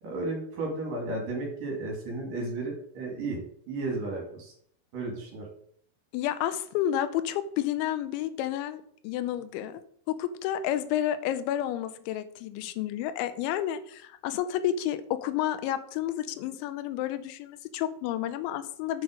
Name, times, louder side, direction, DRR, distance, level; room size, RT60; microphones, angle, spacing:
voice 1, 0.0-3.4 3.7-4.5 4.9-5.5, right 2 dB, 55° right, 0 dB, 3.5 m, -33 dB
voice 2, 6.1-9.8 10.1-19.0, left 11 dB, 85° left, 12 dB, 3.0 m, -30 dB
8.0 x 6.0 x 5.0 m, 0.62 s
omnidirectional pair, 5.3 m